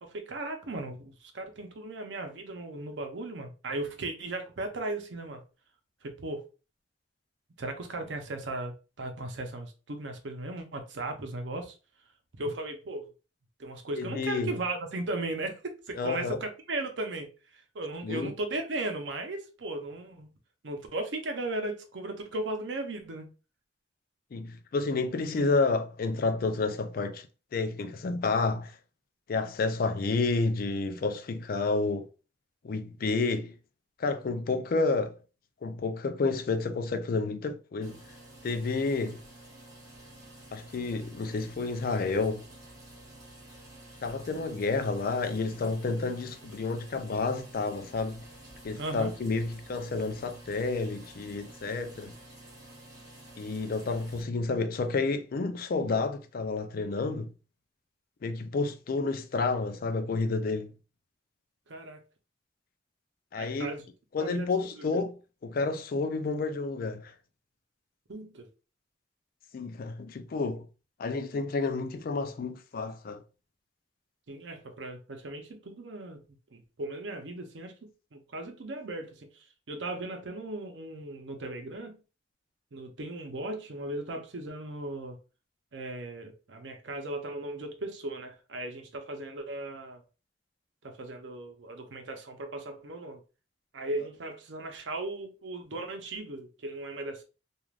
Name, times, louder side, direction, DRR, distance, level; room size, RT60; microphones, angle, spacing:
voice 1, 0.0-5.4 6.0-6.4 7.6-11.7 12.4-13.1 13.6-17.3 17.7-20.3 20.6-23.3 48.8-49.1 61.7-62.0 63.4-63.8 64.2-65.0 68.1-68.5 74.3-76.2 76.5-77.7 78.1-82.0 82.7-85.2 85.7-90.0 90.8-93.2 93.7-97.2, right 2 dB, 90° right, 0.7 m, -37 dB
voice 2, 14.0-14.5 16.0-16.4 18.0-18.3 24.3-27.3 27.5-28.7 29.3-32.1 32.6-33.6 34.0-35.2 35.6-38.0 38.4-39.2 40.5-42.4 44.0-48.2 48.6-52.2 53.4-57.3 58.2-60.7 63.3-63.7 64.1-65.1 65.4-67.1 69.5-70.7 71.0-73.2, left 3 dB, 55° left, 0.4 m, -30 dB
sound 1, 37.8-54.2, right 1 dB, 20° right, 0.9 m, -50 dB
3.2 x 2.4 x 2.4 m
head